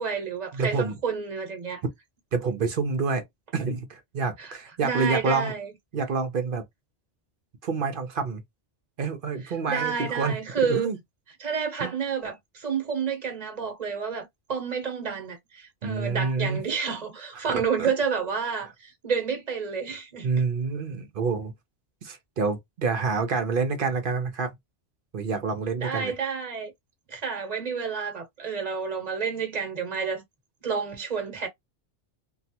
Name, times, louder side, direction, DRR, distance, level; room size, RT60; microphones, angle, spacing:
voice 1, 0.0-1.8 4.4-4.5 4.8-5.7 9.4-10.9 11.4-20.3 25.8-26.7 27.1-30.2 30.6-31.5, right 6 dB, 35° right, 1.1 m, -30 dB
voice 2, 0.5-1.0 2.3-3.2 3.5-5.5 5.9-6.6 7.6-8.4 9.0-10.4 10.6-11.0 11.8-11.9 15.8-16.6 17.3-17.9 20.2-21.5 22.0-24.5 25.1-26.1, right 4 dB, 55° right, 0.8 m, -27 dB
3.1 x 2.3 x 2.8 m
omnidirectional pair, 1.2 m